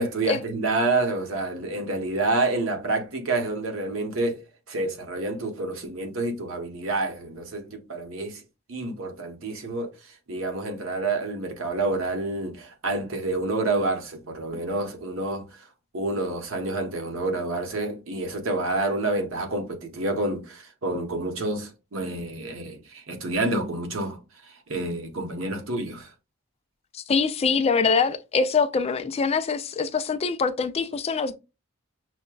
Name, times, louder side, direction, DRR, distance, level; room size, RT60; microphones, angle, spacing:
voice 1, 0.0-4.4 4.7-8.4 8.7-15.7 15.9-26.1, right 2 dB, 75° right, 1.0 m, -28 dB
voice 2, 26.9-31.3, left 5 dB, 30° left, 0.3 m, -24 dB
6.2 x 2.2 x 2.3 m
head